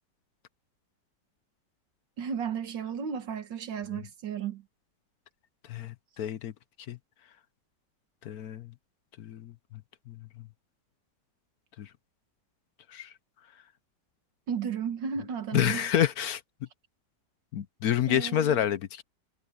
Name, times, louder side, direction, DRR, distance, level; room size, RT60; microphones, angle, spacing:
voice 1, 2.2-4.6 14.5-15.9 18.1-18.6, right 7 dB, 85° right, 2.1 m, -34 dB
voice 2, 5.7-6.5 6.9-7.0 8.2-8.7 9.2-9.5 10.1-10.2 11.8-11.9 12.9-13.1 15.5-16.4 17.5-19.0, left 10 dB, 65° left, 1.1 m, -28 dB
omnidirectional pair, 1.9 m